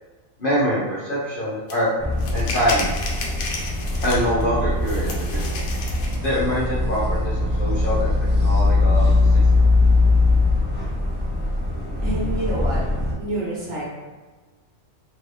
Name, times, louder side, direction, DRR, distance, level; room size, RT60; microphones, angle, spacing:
voice 1, 0.4-1.9 2.3-2.9 4.0-5.6 6.2-9.4, equal, 50° left, -8 dB, 0.7 m, -24 dB
sound 1, 1.7-1.8 2.2-4.4 4.8-6.3, left 3 dB, 90° left, 1.0 m, -32 dB
sound 2, 2.0-13.1, left 2 dB, 15° right, 0.4 m, -21 dB
voice 2, 12.0-12.8 13.2-13.8, right 2 dB, 55° right, -6 dB, 1.3 m, -27 dB
2.9 x 2.5 x 3.2 m, 1.3 s
omnidirectional pair, 1.4 m